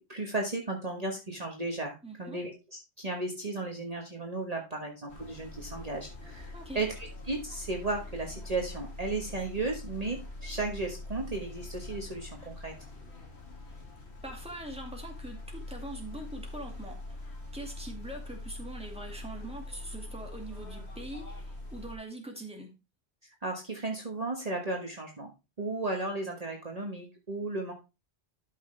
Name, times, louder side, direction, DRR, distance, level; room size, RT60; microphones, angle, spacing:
voice 1, 0.0-12.7 23.2-25.3 25.6-27.7, right 2 dB, 35° right, 1 dB, 1.4 m, -35 dB
voice 2, 2.0-2.4 6.5-6.8 14.2-17.2 17.5-22.7, right 1 dB, 5° right, 1 dB, 2.2 m, -43 dB
sound 1, 5.1-22.0, left 2 dB, 85° left, 2.4 m, -43 dB
12.5 x 5.8 x 3.3 m, 0.27 s
omnidirectional pair, 1.1 m